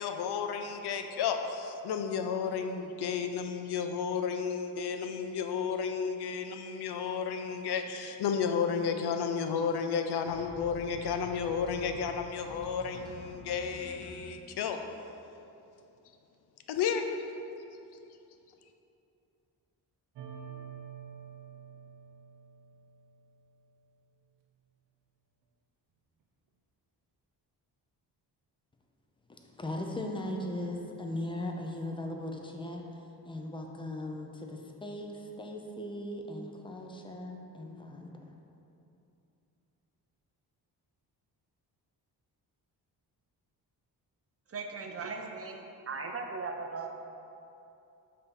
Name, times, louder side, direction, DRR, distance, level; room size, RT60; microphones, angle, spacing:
voice 1, 0.0-14.8 16.7-17.1, left 6 dB, 70° left, 6 dB, 0.5 m, -32 dB
sound 1, 10.3-14.3, left 1 dB, 10° right, 1.0 m, -48 dB
sound 2, 20.1-23.6, right 7 dB, 80° right, 0.7 m, -48 dB
voice 2, 29.3-32.8 33.2-38.1, left 1 dB, 10° left, 2 dB, 0.5 m, -38 dB
voice 3, 44.5-46.9, right 4 dB, 35° right, 3 dB, 0.5 m, -38 dB
6.5 x 2.8 x 5.2 m, 2.8 s
cardioid pair, 105°, 41 cm